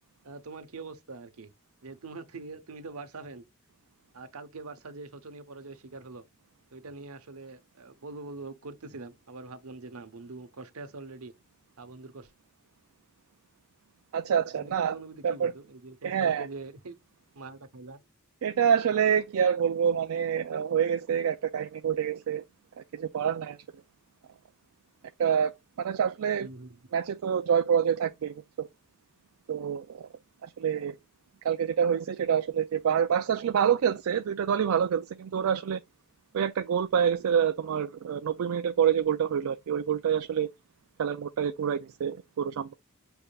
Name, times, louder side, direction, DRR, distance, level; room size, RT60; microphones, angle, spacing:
voice 1, 0.2-1.5 1.8-3.4 4.1-6.2 6.7-11.3 11.8-12.3 14.5-16.9 17.3-18.0 26.4-26.8, right 3 dB, 90° right, 0.9 m, -43 dB
voice 2, 14.1-14.9 15.2-15.5 16.0-16.5 18.4-22.4 22.9-23.6 25.2-26.5 26.9-28.7 29.5-30.0 30.4-31.0 31.4-35.8 36.3-40.5 41.0-42.7, right 8 dB, 75° right, 0.4 m, -27 dB
6.6 x 3.5 x 2.3 m
head